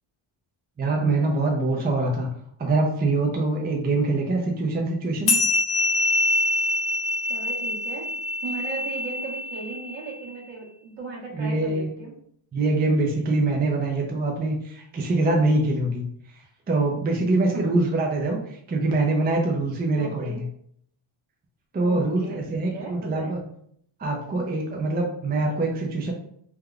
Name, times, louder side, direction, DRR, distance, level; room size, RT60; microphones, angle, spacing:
voice 1, 0.8-2.3 2.6-5.3 11.3-11.9 12.5-16.0 16.3-20.4 21.7-23.4 24.0-26.1, right 2 dB, 20° right, 0 dB, 0.4 m, -24 dB
sound 1, 5.3-10.1, left 2 dB, 50° left, 0.7 m, -25 dB
voice 2, 7.2-8.1 8.4-12.1 17.5-17.8 20.0-20.4 21.8-22.4 22.7-23.3, right 4 dB, 60° right, -5 dB, 1.2 m, -37 dB
3.4 x 2.2 x 2.3 m, 0.67 s
cardioid pair, 110°, 49 cm